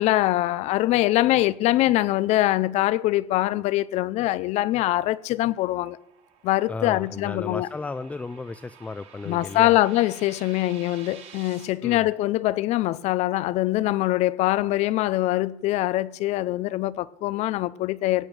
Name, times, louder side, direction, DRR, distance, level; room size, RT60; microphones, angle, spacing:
voice 1, 0.0-6.0 6.4-7.7 9.3-18.3, left 16 dB, 60° left, 0.6 m, -23 dB
sound 1, 5.0-11.6, right 7 dB, 60° right, 4.9 m, -50 dB
voice 2, 6.7-9.8 11.8-12.1, left 3 dB, 10° left, 0.4 m, -34 dB
17.0 x 8.8 x 6.6 m
cardioid pair, 130°, 13 cm